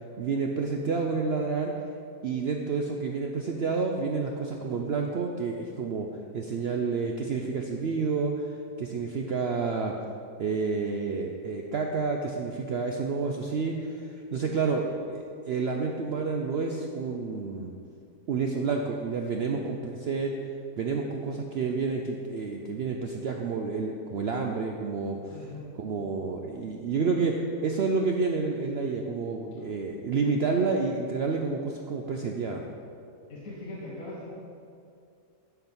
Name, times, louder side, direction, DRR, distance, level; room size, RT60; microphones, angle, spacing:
voice 1, 0.2-1.7 2.2-6.1 6.3-8.5 8.8-9.9 10.4-17.7 18.3-19.8 20.1-20.4 20.8-25.2 25.8-27.3 27.6-32.6, right 4 dB, 80° right, 2 dB, 0.5 m, -29 dB
voice 2, 25.3-25.7 33.3-34.3, left 2 dB, 55° left, -6 dB, 1.8 m, -40 dB
11.0 x 4.7 x 5.4 m, 2.4 s
omnidirectional pair, 1.8 m